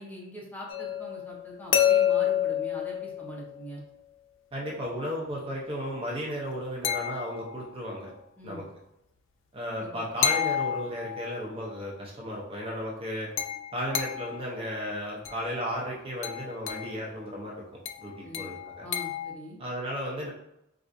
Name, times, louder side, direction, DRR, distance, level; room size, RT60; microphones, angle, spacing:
voice 1, 0.0-3.8 8.4-8.6 9.8-10.0 18.2-18.5 18.8-19.6, equal, 10° left, -4 dB, 0.7 m, -43 dB
sound 1, 0.7-3.8 6.8-7.7 10.2-11.4 13.4-14.4 15.3-15.5 16.2-17.0 17.9-19.3, left 10 dB, 75° left, 0.4 m, -29 dB
voice 2, 4.5-8.1 8.4-8.7 9.5-13.3 13.7-17.5 18.0-18.9 19.6-20.3, equal, 30° right, -3 dB, 0.6 m, -34 dB
4.2 x 2.4 x 2.5 m, 0.84 s
head